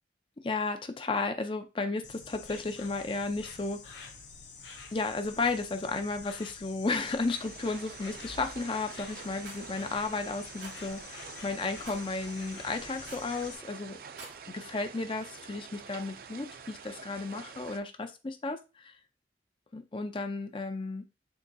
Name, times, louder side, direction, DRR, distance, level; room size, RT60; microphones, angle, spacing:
voice 1, 0.4-4.1 4.9-14.0 14.5-18.6 18.8-18.9 19.7-21.0, left 3 dB, 30° left, 8 dB, 0.5 m, -33 dB
Insect, 2.0-13.6, left 4 dB, 85° left, 0.8 m, -47 dB
sound 1, 7.3-17.8, right 6 dB, 55° right, 0.4 m, -47 dB
Rattle, 9.4-9.6 10.6-10.8 11.8-12.1 13.0-13.3 14.0-14.4, right 3 dB, 90° right, 1.9 m, -46 dB
6.4 x 2.8 x 2.2 m, 0.28 s
head